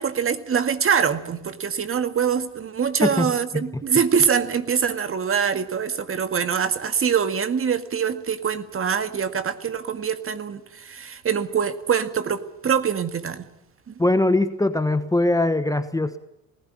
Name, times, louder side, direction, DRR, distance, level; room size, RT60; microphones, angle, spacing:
voice 1, 0.0-13.5 13.9-14.0, right 7 dB, 35° right, 10 dB, 1.9 m, -24 dB
voice 2, 3.0-3.6 14.0-16.2, left 2 dB, 10° left, 11 dB, 1.1 m, -21 dB
19.0 x 16.0 x 9.9 m, 0.86 s
hypercardioid pair, 70°, 39 cm